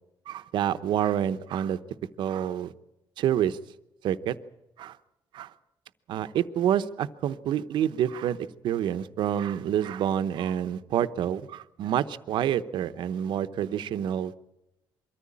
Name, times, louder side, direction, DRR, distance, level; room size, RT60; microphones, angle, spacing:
voice 1, 0.3-1.8 2.2-2.7 3.2-3.6 4.0-4.4 4.8-5.0 5.3-5.5 6.1-14.3, right 10 dB, 70° right, 12 dB, 0.8 m, -28 dB
23.5 x 14.0 x 8.6 m, 0.93 s
cardioid pair, 125°, 8 cm